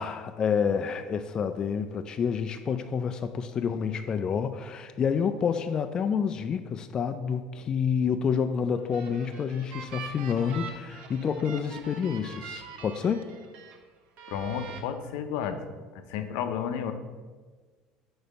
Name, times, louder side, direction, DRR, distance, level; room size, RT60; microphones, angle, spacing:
voice 1, 0.0-13.3, left 6 dB, 35° left, 8 dB, 0.3 m, -28 dB
sound 1, 8.7-13.8 14.2-14.8, right 6 dB, 65° right, 0.8 m, -43 dB
voice 2, 14.3-15.6 16.1-16.9, left 8 dB, 80° left, 8 dB, 0.6 m, -31 dB
5.0 x 4.0 x 5.3 m, 1.4 s
supercardioid pair, 115°, 2 cm